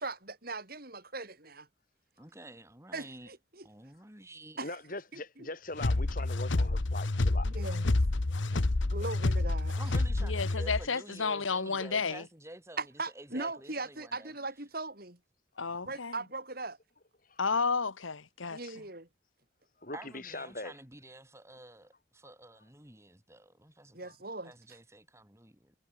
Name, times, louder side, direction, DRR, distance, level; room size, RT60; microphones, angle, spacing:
voice 1, 0.0-1.7 2.9-3.7 4.6-4.8 5.1-5.5 7.4-8.0 8.9-9.8 12.8-15.2 15.8-16.8 18.5-19.1 23.9-24.5, right 3 dB, 50° right, 5.3 m, -39 dB
voice 2, 2.2-3.3 3.6-4.6 8.3-8.8 9.7-14.3 19.9-24.2 24.4-25.7, right 1 dB, 15° right, 6.2 m, -50 dB
voice 3, 4.6-7.5 15.8-15.9 17.3-17.4 19.8-20.7 24.1-24.2, left 2 dB, 45° left, 4.9 m, -41 dB
sound 1, 5.8-10.9, left 2 dB, 70° left, 1.0 m, -29 dB
voice 4, 10.2-12.2 15.6-16.1 17.4-18.6, left 4 dB, 85° left, 1.5 m, -32 dB
head